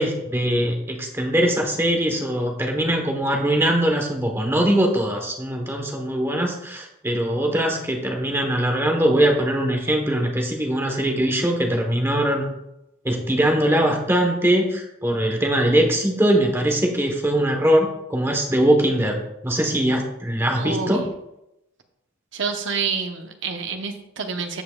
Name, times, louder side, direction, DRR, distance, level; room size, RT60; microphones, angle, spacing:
voice 1, 0.0-12.5 13.0-21.0, right 1 dB, 10° right, 2 dB, 1.1 m, -21 dB
voice 2, 20.5-21.1 22.3-24.6, right 5 dB, 60° right, 5 dB, 0.9 m, -28 dB
15.0 x 5.4 x 2.4 m, 0.87 s
head